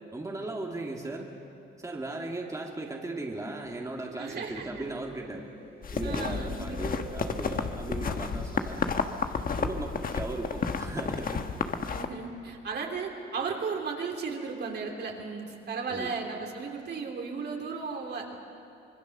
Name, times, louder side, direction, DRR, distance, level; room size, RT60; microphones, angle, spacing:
voice 1, 0.1-1.3 1.8-5.5 5.9-11.4 15.9-16.1, right 2 dB, 15° right, 0 dB, 2.2 m, -37 dB
sound 1, 3.8-8.5, right 5 dB, 35° right, 3.6 m, -50 dB
voice 2, 4.2-4.8 6.0-7.0 10.0-10.1 11.9-18.4, right 5 dB, 55° right, 1 dB, 3.3 m, -35 dB
sound 2, 5.8-12.1, left 5 dB, 45° left, 1.3 m, -31 dB
25.5 x 21.5 x 6.7 m, 2.6 s
cardioid pair, 90°, 20 cm